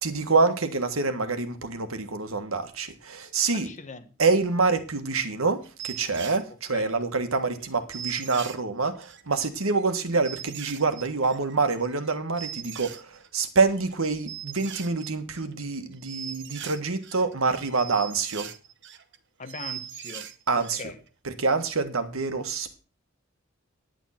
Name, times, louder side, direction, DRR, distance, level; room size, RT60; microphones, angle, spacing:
voice 1, 0.0-3.7 4.2-18.5 20.5-20.8 21.2-22.8, right 4 dB, 85° right, 9 dB, 1.6 m, -26 dB
voice 2, 3.5-4.1 6.7-6.9 19.4-20.3 20.8-21.0, left 3 dB, 35° left, 8 dB, 1.4 m, -40 dB
sound 1, 5.6-6.4 7.0-7.1 7.3-7.4 7.6-7.7 7.9-9.3 9.8-9.9 10.2-13.4 13.7-13.9 14.3-15.6 15.9-19.2 19.4-20.8 21.1-21.2, right 10 dB, 60° right, 1.0 m, -40 dB
10.0 x 9.2 x 5.8 m, 0.34 s
head